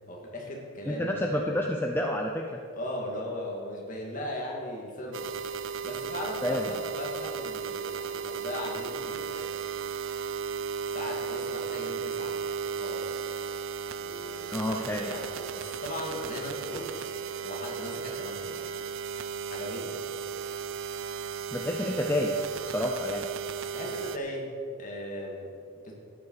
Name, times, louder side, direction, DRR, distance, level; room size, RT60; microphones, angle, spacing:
voice 1, 0.1-1.5 2.7-5.3 5.8-9.5 10.9-12.4 12.8-13.4 14.0-17.1 17.4-18.7 19.4-20.1 23.7-24.5 24.8-25.5 25.8-26.0, left 1 dB, 40° left, -2 dB, 2.2 m, -38 dB
voice 2, 0.9-2.6 6.4-6.7 14.5-15.0 21.5-23.3, left 1 dB, 10° left, 1 dB, 0.5 m, -29 dB
sound 1, 5.1-24.2, right 7 dB, 70° right, 0.5 m, -35 dB
13.0 x 10.0 x 4.8 m, 2.3 s
head